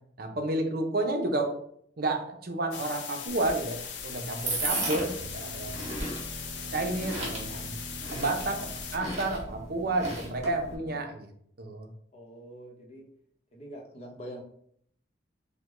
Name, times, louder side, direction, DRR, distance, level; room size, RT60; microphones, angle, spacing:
voice 1, 0.2-1.6 2.0-5.8 6.7-7.8 8.1-11.3 11.6-11.9, right 2 dB, 55° right, 4 dB, 0.7 m, -31 dB
sound 1, 2.7-9.0, left 7 dB, 70° left, 0.5 m, -40 dB
sound 2, 3.3-10.7, right 2 dB, 35° right, 1.3 m, -37 dB
sound 3, 4.9-11.1, right 2 dB, ahead, 1.5 m, -44 dB
voice 2, 12.1-13.1 13.5-14.4, equal, 35° left, -1 dB, 0.9 m, -44 dB
4.9 x 2.2 x 3.7 m, 0.66 s
head